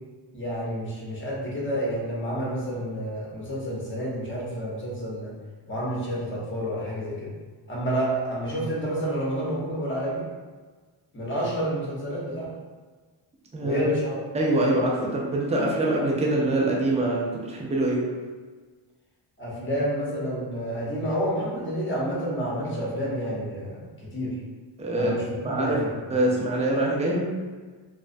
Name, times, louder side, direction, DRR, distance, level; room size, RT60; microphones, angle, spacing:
voice 1, 0.3-5.3 5.7-7.3 7.7-10.3 11.1-12.5 13.6-14.2 19.4-24.3 24.9-26.2, equal, 25° left, -5 dB, 0.8 m, -29 dB
voice 2, 14.3-18.1 24.8-25.1 25.4-25.8 26.1-27.3, right 1 dB, 15° right, -3 dB, 0.4 m, -24 dB
2.3 x 2.1 x 2.5 m, 1.4 s
cardioid pair, 80°, 46 cm